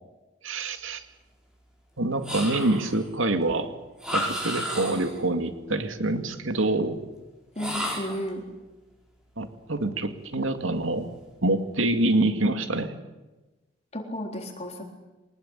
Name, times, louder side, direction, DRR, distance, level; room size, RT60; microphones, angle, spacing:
voice 1, 0.4-1.0 2.0-3.8 4.1-7.0 9.4-11.1 11.4-13.0, right 2 dB, 85° right, 8 dB, 2.2 m, -26 dB
sound 1, 2.2-3.0 4.0-5.2 7.5-8.3, equal, 5° right, 5.4 m, -32 dB
voice 2, 7.6-8.4 13.9-14.8, equal, 35° left, 2 dB, 4.0 m, -33 dB
23.5 x 19.5 x 9.0 m, 1.1 s
head